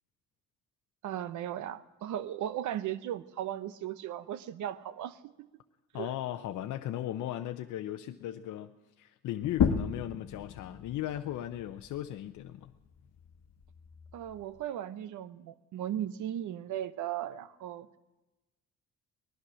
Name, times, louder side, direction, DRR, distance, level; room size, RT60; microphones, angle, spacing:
voice 1, 1.0-5.5 5.9-6.1 14.1-17.9, right 11 dB, 75° right, 15 dB, 0.8 m, -37 dB
voice 2, 5.9-8.7 9.0-12.7, left 12 dB, 80° left, 7 dB, 0.7 m, -37 dB
sound 1, 9.4-14.6, left 7 dB, 60° left, 1.1 m, -35 dB
19.5 x 11.5 x 6.2 m, 1.1 s
cardioid pair, 90°, 30 cm